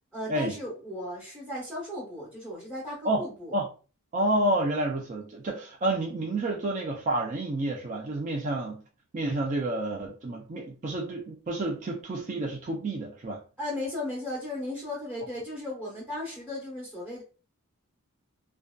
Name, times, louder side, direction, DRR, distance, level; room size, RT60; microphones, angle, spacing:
voice 1, 0.1-3.6 13.6-17.2, left 1 dB, 5° right, 0.9 m, -36 dB
voice 2, 4.1-8.8 9.1-13.4, right 1 dB, 35° right, 0.4 m, -29 dB
2.6 x 2.2 x 2.3 m
head